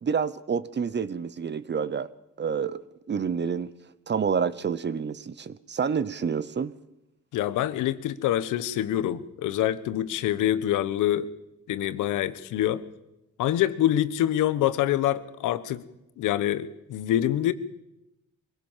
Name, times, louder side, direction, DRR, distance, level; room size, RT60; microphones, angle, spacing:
voice 1, 0.0-2.1 2.4-2.8 3.1-3.7 4.1-6.7, right 6 dB, 35° right, 17 dB, 1.0 m, -28 dB
voice 2, 7.3-11.3 11.7-12.8 13.4-15.8 16.2-17.5, left 12 dB, 90° left, 14 dB, 1.2 m, -25 dB
23.0 x 16.5 x 7.4 m, 0.90 s
cardioid pair, 90°, 30 cm